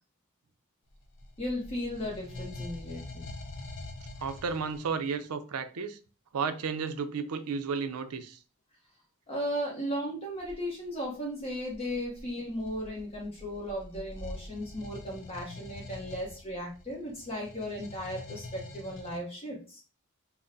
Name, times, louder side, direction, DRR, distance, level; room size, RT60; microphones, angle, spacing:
sound 1, 0.9-5.0 10.4-10.6 11.4-19.2, left 2 dB, 60° left, 0.6 m, -45 dB
voice 1, 1.4-3.3 9.3-19.8, equal, 30° left, -2 dB, 0.8 m, -36 dB
voice 2, 4.2-6.0 6.3-8.4, right 5 dB, 90° right, 10 dB, 0.5 m, -33 dB
5.7 x 2.1 x 2.6 m, 0.37 s
head